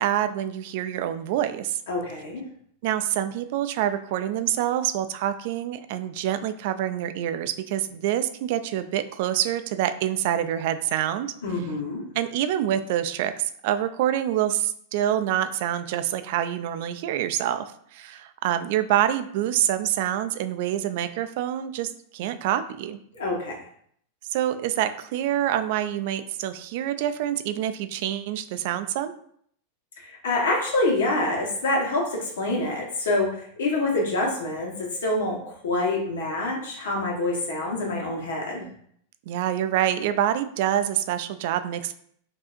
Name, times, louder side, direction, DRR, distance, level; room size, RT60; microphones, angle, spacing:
voice 1, 0.0-1.8 2.8-11.3 12.1-17.7 17.9-23.0 24.3-29.1 39.3-41.9, right 11 dB, 55° right, 10 dB, 0.3 m, -26 dB
voice 2, 1.9-2.4 11.4-12.0 23.1-23.6 30.0-38.6, left 2 dB, 85° left, -1 dB, 1.2 m, -26 dB
4.7 x 2.7 x 2.5 m, 0.64 s
supercardioid pair, 155°, 0 cm